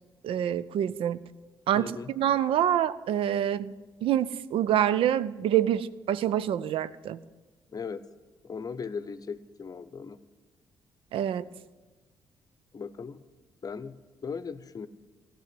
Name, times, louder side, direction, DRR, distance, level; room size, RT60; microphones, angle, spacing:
voice 1, 0.2-1.2 1.7-3.7 4.0-7.2 11.1-11.4, right 10 dB, 60° right, 16 dB, 0.5 m, -26 dB
voice 2, 1.7-2.1 7.7-8.0 8.4-10.2 12.7-13.2 13.6-14.0 14.2-14.9, left 5 dB, 35° left, 14 dB, 0.8 m, -37 dB
16.0 x 6.2 x 9.6 m, 1.3 s
figure-of-eight pair, 40°, 10 cm